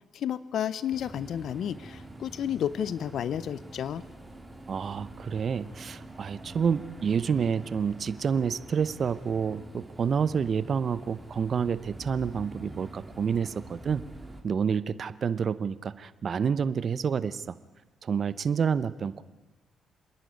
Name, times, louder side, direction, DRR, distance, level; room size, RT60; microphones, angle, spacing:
voice 1, 0.1-4.0, left 9 dB, 65° left, 17 dB, 0.6 m, -31 dB
sound 1, 0.9-14.4, right 1 dB, 10° right, 2.3 m, -46 dB
voice 2, 4.7-14.0 14.4-17.5 18.0-19.2, right 6 dB, 50° right, 15 dB, 0.8 m, -28 dB
27.5 x 10.5 x 9.5 m, 1.2 s
cardioid pair, 90°, 0 cm